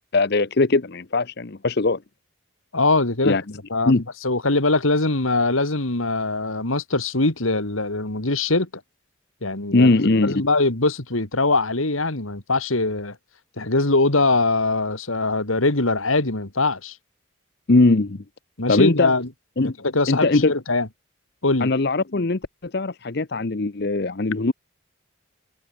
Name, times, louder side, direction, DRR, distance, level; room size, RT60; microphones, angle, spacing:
voice 1, 0.1-2.0 3.2-3.4 3.9-4.0 9.7-10.4 17.7-18.2 18.7-19.1 19.6-19.7 20.1-20.5 21.6-24.5, left 3 dB, 50° left, 0.8 m, -20 dB
voice 2, 2.7-3.4 3.7-3.9 4.2-8.7 9.4-9.9 10.3-13.2 13.6-17.0 18.6-19.3 19.6-20.9 21.4-21.7, left 2 dB, 80° left, 2.8 m, -22 dB
head